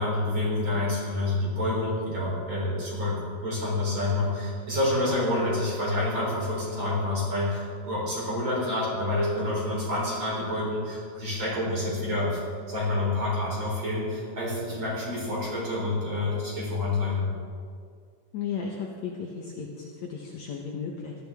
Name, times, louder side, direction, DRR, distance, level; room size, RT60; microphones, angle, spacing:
voice 1, 0.0-12.4 12.7-17.3, left 2 dB, 35° right, -5 dB, 4.4 m, -28 dB
voice 2, 18.3-21.2, left 6 dB, 65° left, -1 dB, 2.0 m, -35 dB
18.0 x 13.0 x 3.6 m, 2.1 s
omnidirectional pair, 4.2 m